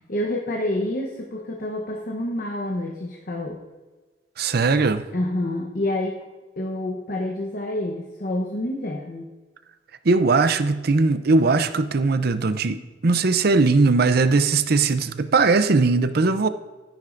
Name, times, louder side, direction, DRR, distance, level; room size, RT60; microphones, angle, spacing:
voice 1, 0.1-3.6 5.1-6.2 6.6-9.3, left 1 dB, 50° left, 0 dB, 1.0 m, -28 dB
voice 2, 4.4-5.0 10.0-16.5, right 3 dB, 55° right, 11 dB, 0.6 m, -19 dB
13.0 x 10.0 x 2.6 m, 1.3 s
head